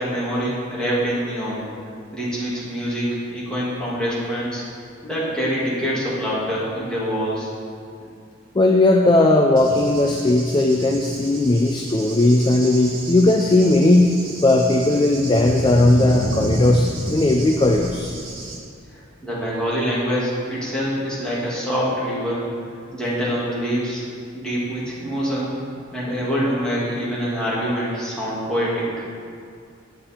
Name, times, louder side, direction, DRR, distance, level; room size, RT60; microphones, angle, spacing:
voice 1, 0.0-1.6 2.1-4.6 5.0-7.5 19.2-22.4 22.9-24.0 24.3-25.5 25.9-28.9, equal, 5° left, -9 dB, 2.3 m, -25 dB
voice 2, 8.5-14.1 14.4-18.1, left 2 dB, 25° left, 3 dB, 0.4 m, -17 dB
Cricket / Thunder, 9.6-18.6, right 1 dB, 85° right, 1.4 m, -31 dB
8.9 x 7.1 x 4.4 m, 2.3 s
head